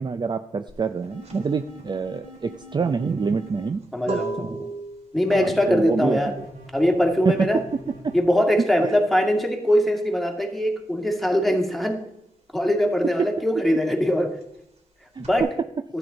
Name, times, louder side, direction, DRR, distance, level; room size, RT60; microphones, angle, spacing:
voice 1, 0.0-3.8 4.1-4.6 5.3-6.2 7.3-8.2 8.8-9.0 13.2-13.3 15.1-15.3, right 5 dB, 35° right, 9 dB, 0.5 m, -26 dB
sound 1, 0.7-10.9 11.2-15.4, right 3 dB, 60° right, 3.6 m, -39 dB
sound 2, 1.0-3.7 5.2-8.2, equal, 85° right, 4.7 m, -44 dB
voice 2, 3.9-4.7 5.1-6.3 6.7-7.6 8.1-12.0 12.5-14.4 15.2-15.5, equal, ahead, 2 dB, 2.1 m, -22 dB
12.5 x 8.8 x 4.0 m, 0.79 s
cardioid pair, 85°, 14 cm